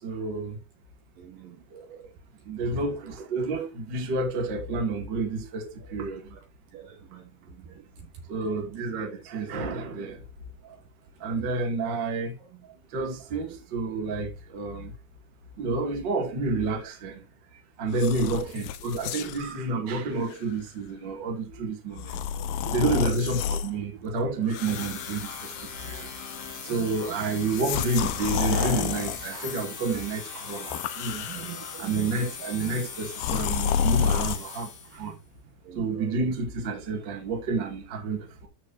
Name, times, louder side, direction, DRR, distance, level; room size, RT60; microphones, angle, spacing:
voice 1, 0.0-0.6 1.7-2.0 2.4-6.3 8.3-10.2 10.6-10.8 11.2-14.9 15.6-17.3 17.8-22.2 22.7-26.2 26.6-31.3 31.8-35.2 35.7-38.5, right 3 dB, 35° right, 2.0 m, -30 dB
voice 2, 1.2-1.6 6.7-7.2 11.4-11.5 22.7-22.8 25.9-26.0 26.7-26.8 31.3-32.1 35.7-36.0, right 11 dB, 60° right, 2.7 m, -43 dB
sound 1, 17.9-19.5 20.2-20.4 22.0-23.7 24.5-25.9 26.2-26.6 27.4-29.7 30.4-31.8 33.1-34.4, left 8 dB, 90° left, 2.2 m, -30 dB
sound 2, 24.5-35.1, left 5 dB, 50° left, 3.0 m, -40 dB
13.5 x 4.8 x 2.6 m
omnidirectional pair, 5.1 m